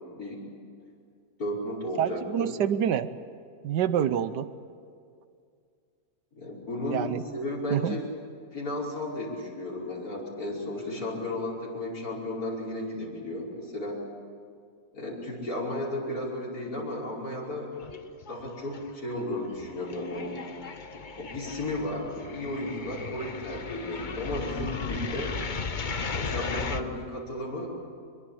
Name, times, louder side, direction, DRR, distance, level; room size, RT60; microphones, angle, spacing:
voice 1, 1.4-2.5 6.3-8.0 8.5-14.0 14.9-17.7 18.3-20.4 21.2-25.3 26.1-27.7, left 1 dB, 55° left, -5 dB, 5.8 m, -34 dB
voice 2, 2.0-3.1 3.6-4.5 6.9-7.2 7.7-8.0, right 9 dB, 80° right, 13 dB, 1.4 m, -27 dB
sound 1, 17.8-18.5 18.7-26.8, left 5 dB, 35° left, 0.9 m, -36 dB
24.0 x 22.0 x 8.6 m, 2.3 s
omnidirectional pair, 1.8 m